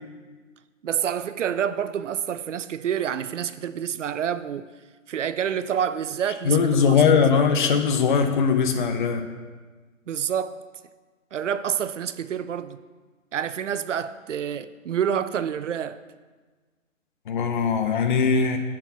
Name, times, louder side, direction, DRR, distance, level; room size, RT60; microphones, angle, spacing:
voice 1, 0.8-4.7 5.1-7.0 7.3-7.5 10.1-10.6 11.3-12.8 13.3-16.0, right 8 dB, 65° right, 0.5 m, -28 dB
voice 2, 6.4-9.3 17.3-18.6, left 6 dB, 40° left, 0.7 m, -20 dB
7.5 x 4.7 x 6.9 m
hypercardioid pair, 145°, 40 cm